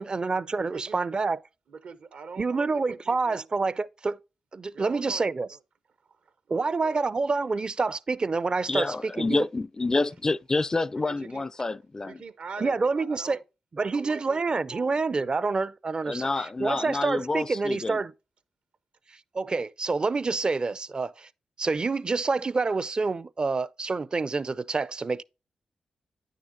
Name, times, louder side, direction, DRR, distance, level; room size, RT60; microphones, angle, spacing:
voice 1, 0.0-1.4 2.4-4.2 4.5-5.6 6.5-9.5 12.6-13.4 13.7-18.1 19.4-21.3 21.6-25.2, right 4 dB, 40° right, 0.4 m, -27 dB
voice 2, 0.6-1.0 1.7-3.4 4.7-5.3 6.5-7.1 11.1-11.4 12.0-13.4 13.8-14.9, right 5 dB, 70° right, 0.8 m, -43 dB
voice 3, 8.7-12.2 12.6-12.8 16.0-18.0, left 3 dB, 30° left, 0.3 m, -28 dB
9.4 x 6.5 x 2.6 m
supercardioid pair, 50°, 2 cm